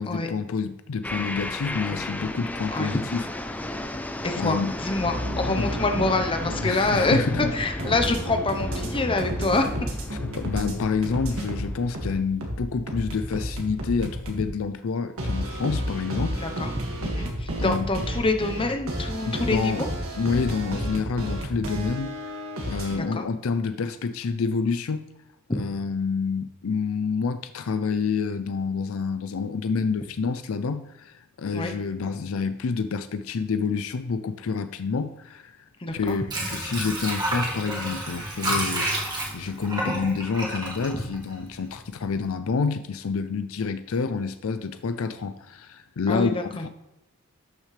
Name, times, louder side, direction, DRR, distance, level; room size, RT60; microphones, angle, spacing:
voice 1, 0.0-3.8 4.4-4.7 5.6-5.7 6.6-7.5 10.3-16.4 17.6-17.8 19.2-19.8 20.2-22.1 22.6-25.1 25.5-35.6 35.9-46.7, left 5 dB, 70° left, 11 dB, 0.5 m, -28 dB
sound 1, 1.0-12.2, left 1 dB, 5° left, 0.5 m, -34 dB
voice 2, 4.2-9.7 16.3-16.7 17.0-19.9 22.9-23.3 25.5-25.6 31.5-31.7 35.8-36.2 46.1-46.7, left 2 dB, 25° left, 6 dB, 0.8 m, -26 dB
sound 2, 5.0-10.7 11.0-14.5 15.2-23.0, equal, 75° right, 2.0 m, -31 dB
Water / Sink (filling or washing), 35.9-41.8 42.2-42.3, right 1 dB, 20° right, 1.7 m, -30 dB
12.5 x 6.3 x 3.3 m, 0.91 s
head